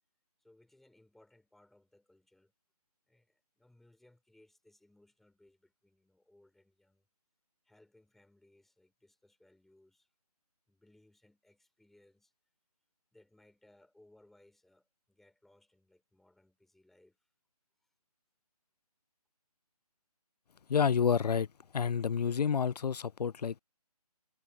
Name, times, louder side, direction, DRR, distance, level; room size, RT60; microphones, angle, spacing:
voice 1, 0.4-2.5 3.1-7.0 7.6-10.1 10.7-12.3 13.1-17.2, left 1 dB, ahead, 3.6 m, -65 dB
voice 2, 20.7-21.5 21.7-23.6, left 7 dB, 90° left, 0.4 m, -29 dB
figure-of-eight pair, 160°, 20 cm